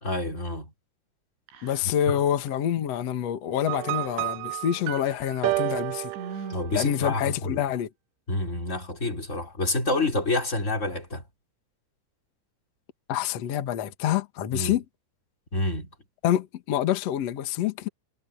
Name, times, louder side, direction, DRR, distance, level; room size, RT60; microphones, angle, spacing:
voice 1, 0.0-0.7 2.1-2.2 6.5-7.6 8.3-11.2 14.5-14.8 15.5-15.9, left 2 dB, 15° left, 4.0 m, -28 dB
Whispering, 1.5-2.2 2.5-2.6 3.7-4.6 5.2-5.3 6.1-7.3, right 5 dB, 65° right, 7.3 m, -42 dB
voice 2, 1.6-6.1 6.7-7.9 13.1-14.8 16.2-17.9, left 11 dB, 85° left, 1.4 m, -27 dB
sound 1, 3.7-7.1, right 21 dB, 85° right, 2.9 m, -31 dB
omnidirectional pair, 5.7 m